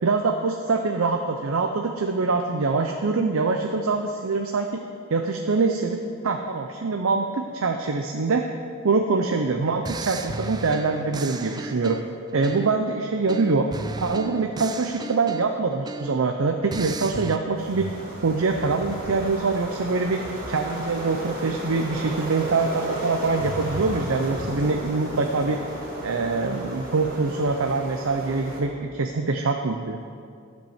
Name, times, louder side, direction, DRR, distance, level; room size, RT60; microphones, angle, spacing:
voice 1, 0.0-4.8 5.1-6.0 6.2-8.5 8.8-12.0 12.3-13.7 14.0-17.9 18.2-20.2 20.5-25.6 26.0-30.0, right 4 dB, 70° right, 4 dB, 0.6 m, -24 dB
sound 1, 9.3-9.5 9.9-12.9 13.3-16.3 16.7-17.4, right 3 dB, 20° right, 0.3 m, -35 dB
sound 2, 17.5-28.6, right 1 dB, 45° right, 2.1 m, -34 dB
12.0 x 5.4 x 7.2 m, 2.3 s
head